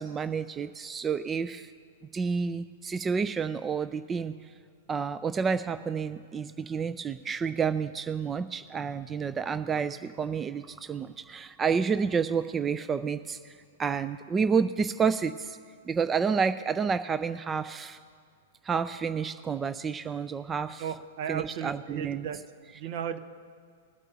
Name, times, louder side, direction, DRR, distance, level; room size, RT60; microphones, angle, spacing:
voice 1, 0.0-1.7 2.1-4.3 4.9-13.5 13.8-15.6 15.8-18.0 18.6-20.8 21.3-22.3, right 6 dB, 20° right, 12 dB, 0.4 m, -29 dB
voice 2, 20.8-22.4 22.7-23.2, right 8 dB, 55° right, 11 dB, 0.8 m, -35 dB
22.0 x 8.3 x 2.8 m, 2.1 s
hypercardioid pair, 115°, 0 cm